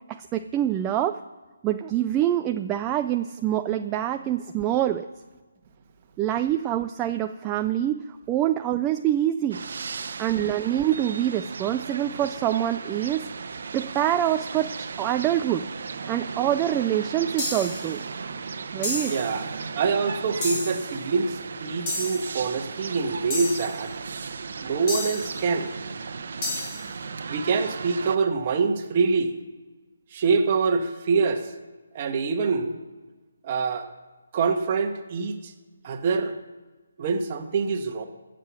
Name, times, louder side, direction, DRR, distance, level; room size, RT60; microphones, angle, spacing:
voice 1, 0.1-1.2 1.6-5.1 6.2-9.6 10.2-13.3 13.7-15.7 16.1-18.0 18.7-19.1, right 12 dB, 15° right, 6 dB, 0.3 m, -25 dB
sound 1, 9.5-28.2, right 5 dB, 55° right, 0.9 m, -36 dB
sound 2, 17.4-17.9 18.8-19.3 20.4-20.9 21.9-22.4 23.3-23.8 24.9-25.4 26.4-26.9, left 2 dB, 25° left, 2.6 m, -31 dB
voice 2, 19.1-23.9 24.6-25.7 27.3-29.3 30.1-31.5 31.9-32.8 33.4-33.9 34.3-35.5 35.8-36.4 37.0-38.1, right 5 dB, 30° right, 5 dB, 1.3 m, -25 dB
16.5 x 7.6 x 6.2 m, 1.3 s
hypercardioid pair, 165°, 0 cm